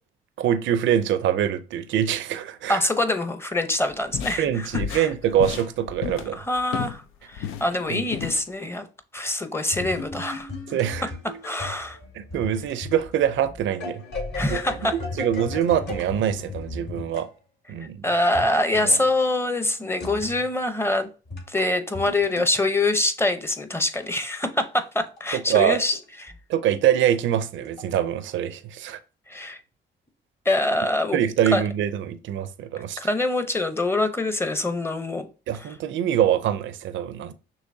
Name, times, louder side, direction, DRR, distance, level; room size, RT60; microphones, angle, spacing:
voice 1, 0.4-2.8 4.4-6.4 7.9-8.0 10.7-11.1 12.1-14.0 14.5-14.6 15.2-17.3 17.7-18.0 18.8-19.0 25.3-25.8 26.5-29.0 31.1-33.0 35.5-37.3, right 10 dB, 75° right, 0.5 m, -24 dB
voice 2, 2.7-5.1 6.3-7.0 7.3-8.9 9.1-10.5 11.4-12.0 14.3-14.9 18.0-21.1 21.5-26.3 29.3-29.6 30.4-31.2 31.5-31.6 33.0-35.3 35.6-35.7, left 2 dB, 10° left, 0.7 m, -25 dB
sound 1, 3.9-7.0 7.3-8.4, left 8 dB, 90° left, 0.5 m, -32 dB
sound 2, 9.7-17.3 18.3-18.9 20.0-20.5 21.3-22.6 24.0-26.0 26.3-26.4 27.0-28.0, left 2 dB, 60° left, 2.0 m, -36 dB
6.3 x 3.0 x 2.7 m
cardioid pair, 90°, 20 cm